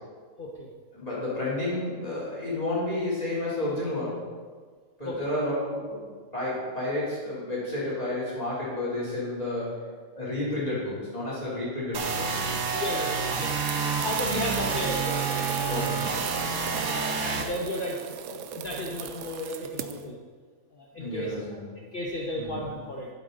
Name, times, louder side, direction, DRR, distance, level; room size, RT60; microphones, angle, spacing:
voice 1, 0.4-0.7 5.0-5.2 12.7-16.0 16.3-16.5 16.8-20.2 20.7-21.3 21.8-23.1, left 1 dB, 45° left, -1 dB, 1.0 m, -34 dB
voice 2, 0.9-4.2 5.0-6.0 6.3-9.7 10.1-12.6 15.7-16.1 21.0-21.6 22.5-22.6, left 1 dB, 30° left, -7 dB, 3.6 m, -31 dB
sound 1, 11.9-17.4, right 5 dB, 90° right, 1.4 m, -28 dB
sound 2, 13.5-20.0, right 9 dB, 70° right, 0.8 m, -39 dB
12.0 x 7.4 x 4.0 m, 1.6 s
omnidirectional pair, 1.4 m